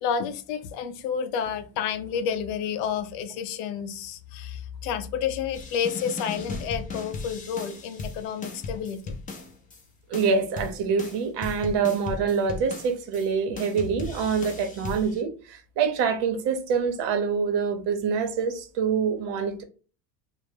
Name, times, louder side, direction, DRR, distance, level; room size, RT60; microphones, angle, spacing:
voice 1, 0.0-9.1, left 7 dB, 80° left, 0.6 m, -30 dB
sound 1, 5.5-9.8 10.1-13.3 13.6-15.2, left 3 dB, 20° left, 0.3 m, -37 dB
voice 2, 10.1-19.6, right 6 dB, 60° right, 0.7 m, -26 dB
2.1 x 2.0 x 3.1 m
supercardioid pair, 95°, 48 cm